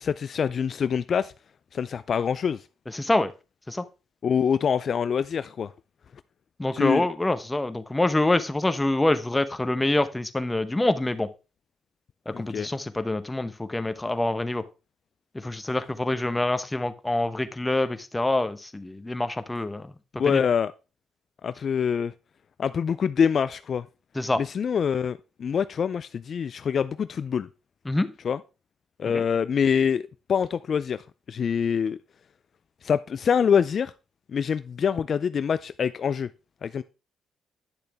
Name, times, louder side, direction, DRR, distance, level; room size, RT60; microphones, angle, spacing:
voice 1, 0.0-1.3 1.7-2.6 4.2-5.7 6.7-7.1 12.3-12.7 20.2-20.7 21.4-22.1 22.6-23.9 24.4-27.5 28.2-28.4 29.0-31.0 31.3-32.0 32.8-33.9 34.3-36.3 36.6-36.8, left 7 dB, 50° left, 0.3 m, -25 dB
voice 2, 2.9-3.3 3.7-3.8 6.6-11.3 12.3-14.6 15.3-19.8 20.2-20.4 24.1-24.4 27.9-28.1 29.1-29.2, left 2 dB, 15° left, 0.9 m, -26 dB
9.9 x 6.7 x 3.5 m
cardioid pair, 90°, 0 cm